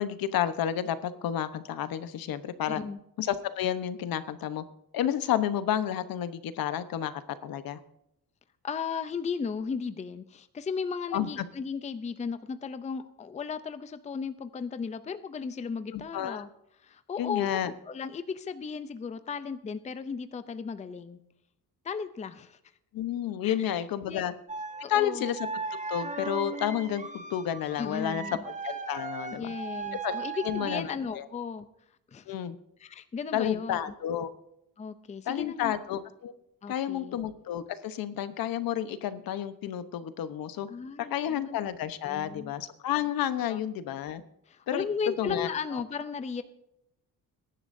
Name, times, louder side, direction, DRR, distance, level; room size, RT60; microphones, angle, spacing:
voice 1, 0.0-2.8 3.2-4.6 4.9-7.8 11.1-11.4 15.9-16.4 17.2-17.7 22.9-24.3 24.9-25.5 25.9-28.2 28.6-29.5 30.0-30.1 30.4-30.9 31.1-31.3 32.3-32.5 33.3-34.3 35.3-36.3 36.7-40.7 41.0-44.2 44.7-44.9 45.2-45.8, left 10 dB, 70° left, 12 dB, 1.1 m, -31 dB
voice 2, 2.7-3.0 8.6-16.5 16.8-17.5 17.9-21.2 21.8-22.6 23.4-24.2 24.8-25.3 27.8-28.5 29.3-31.7 32.1-32.3 32.8-33.8 34.8-35.7 36.6-37.2 40.7-41.6 42.0-42.5 43.5-43.6 44.5-46.4, left 5 dB, 20° left, 11 dB, 0.5 m, -35 dB
sound 1, 24.5-30.9, right 4 dB, 20° right, 1.2 m, -37 dB
21.0 x 11.0 x 2.7 m, 0.81 s
cardioid pair, 150°, 36 cm